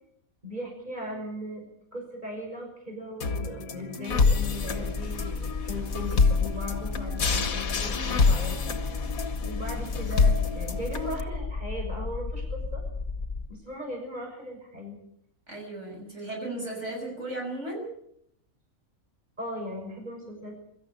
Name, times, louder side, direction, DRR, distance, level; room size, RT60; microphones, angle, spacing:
voice 1, 0.4-1.6 1.9-8.8 9.4-12.8 13.5-15.0 19.4-20.6, left 1 dB, 30° right, 1 dB, 6.6 m, -38 dB
sound 1, 3.2-11.2, left 4 dB, 75° left, 1.9 m, -27 dB
sound 2, 4.1-13.5, left 4 dB, 30° left, 1.3 m, -34 dB
voice 2, 15.5-17.9, right 2 dB, 55° right, 0 dB, 7.0 m, -35 dB
24.0 x 14.0 x 9.7 m, 0.75 s
omnidirectional pair, 1.5 m